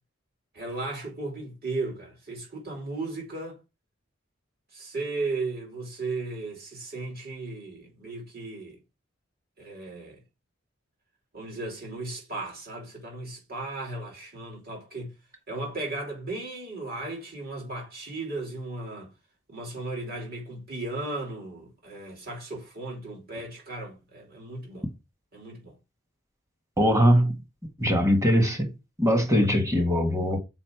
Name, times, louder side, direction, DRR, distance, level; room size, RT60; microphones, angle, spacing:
voice 1, 0.5-3.6 4.7-8.8 9.6-10.2 11.3-15.1 15.5-19.1 19.5-24.9 25.3-25.7, right 2 dB, 50° right, 3.0 m, -36 dB
voice 2, 26.8-27.4 27.8-28.7 29.0-30.4, equal, 15° right, 1.4 m, -21 dB
6.4 x 5.0 x 4.6 m
head